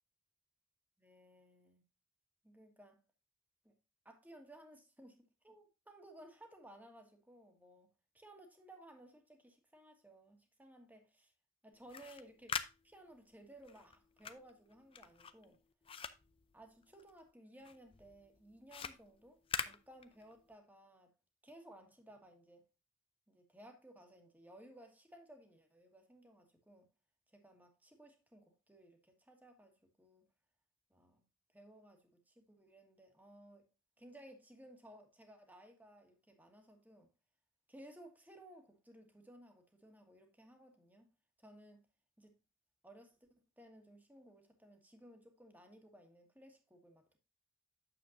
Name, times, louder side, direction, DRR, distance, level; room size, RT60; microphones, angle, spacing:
voice 1, 1.0-1.8 2.4-3.0 3.6-3.7 4.0-11.3 11.6-12.5 12.8-15.6 16.5-21.1 21.4-22.7 23.3-26.9 27.3-30.2 30.9-31.2 31.5-33.7 34.0-37.1 37.7-41.1 41.4-41.8 42.2-42.4 42.8-43.2 43.6-47.2, right 1 dB, 10° right, 1.5 m, -59 dB
sound 1, 11.7-17.3 17.6-20.5, left 6 dB, 30° left, 0.5 m, -45 dB
8.9 x 7.2 x 2.6 m
head